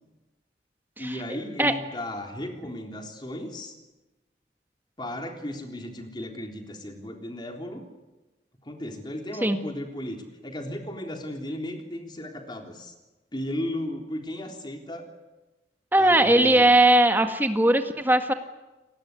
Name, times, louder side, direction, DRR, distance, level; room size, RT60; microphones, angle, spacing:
voice 1, 1.0-3.7 5.0-7.8 8.6-12.9 13.3-15.1 16.0-16.8, left 1 dB, 25° left, 3 dB, 3.7 m, -35 dB
voice 2, 15.9-18.3, right 1 dB, 10° right, 6 dB, 1.8 m, -19 dB
29.5 x 19.0 x 9.6 m, 1.1 s
head